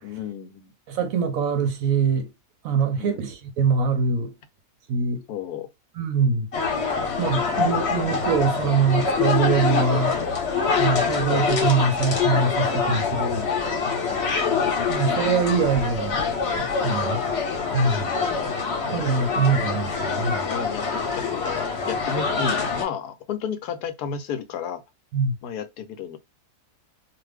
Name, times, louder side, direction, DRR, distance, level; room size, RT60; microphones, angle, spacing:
voice 1, 0.0-0.7 3.0-3.2 5.3-5.7 13.0-13.5 14.1-14.5 17.0-17.4 20.5-24.8 25.4-26.2, left 7 dB, 80° left, 1.1 m, -32 dB
voice 2, 0.9-2.3 2.6-4.3 4.9-5.2 5.9-6.5 7.2-10.2 10.8-13.2 14.9-16.2 16.6-17.2 17.7-18.2 18.9-20.5 25.1-25.4, right 5 dB, 65° right, 1.0 m, -23 dB
sound 1, 6.5-22.8, left 5 dB, 50° left, 1.0 m, -25 dB
2.5 x 2.5 x 3.3 m
omnidirectional pair, 1.7 m